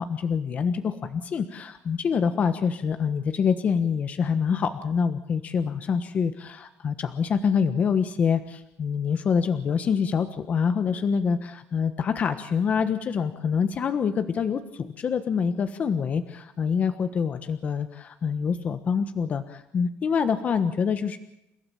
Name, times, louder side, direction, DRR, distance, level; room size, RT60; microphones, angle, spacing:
voice 1, 0.0-21.2, left 6 dB, 35° left, 9 dB, 1.3 m, -26 dB
30.0 x 16.0 x 7.1 m, 0.86 s
cardioid pair, 165°, 4 cm